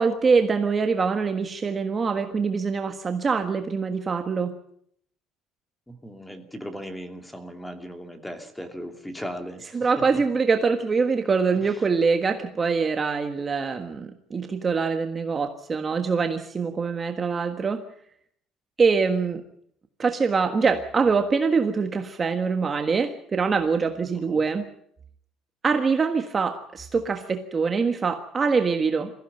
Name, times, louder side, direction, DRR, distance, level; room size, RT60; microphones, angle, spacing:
voice 1, 0.0-4.5 9.7-17.8 18.8-19.4 20.0-24.6 25.6-29.1, right 5 dB, 25° right, 5 dB, 1.5 m, -24 dB
voice 2, 5.9-10.2 11.6-11.8 24.3-24.4, equal, 5° left, 6 dB, 2.6 m, -38 dB
23.0 x 15.5 x 9.1 m, 0.69 s
cardioid pair, 150°, 0 cm